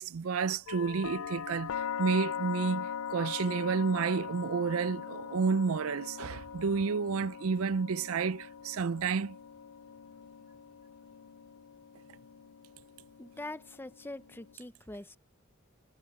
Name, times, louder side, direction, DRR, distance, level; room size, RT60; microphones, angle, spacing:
voice 1, 0.0-9.4, right 5 dB, 80° right, 0.5 m, -30 dB
sound 1, 0.7-14.5, left 7 dB, 90° left, 0.4 m, -41 dB
voice 2, 13.2-15.2, left 2 dB, 10° left, 0.7 m, -43 dB
head